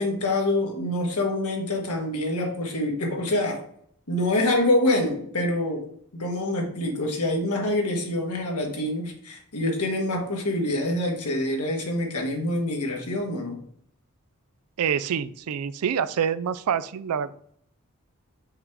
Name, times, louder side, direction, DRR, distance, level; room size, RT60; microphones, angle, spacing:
voice 1, 0.0-3.6 4.1-5.8 6.1-13.6, left 1 dB, 85° left, 1 dB, 1.5 m, -26 dB
voice 2, 14.8-17.3, right 7 dB, 80° right, 15 dB, 0.4 m, -26 dB
5.5 x 4.7 x 3.6 m, 0.65 s
head